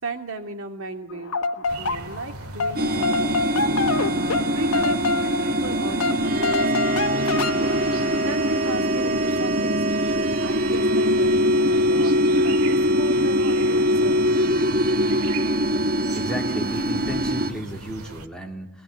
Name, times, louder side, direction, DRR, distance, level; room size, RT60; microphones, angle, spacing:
voice 1, 0.0-3.9 4.5-7.7 8.2-14.2, right 2 dB, 65° right, 5 dB, 2.6 m, -36 dB
sound 1, 1.1-2.3 2.6-8.7, left 3 dB, 75° left, 1.3 m, -27 dB
sound 2, 1.7-18.3, right 1 dB, 85° right, 2.0 m, -38 dB
sound 3, 2.8-17.5, equal, 45° right, 1.4 m, -22 dB
voice 2, 16.1-18.8, equal, 5° left, 1 dB, 3.0 m, -33 dB
23.5 x 19.0 x 9.4 m, 0.73 s
head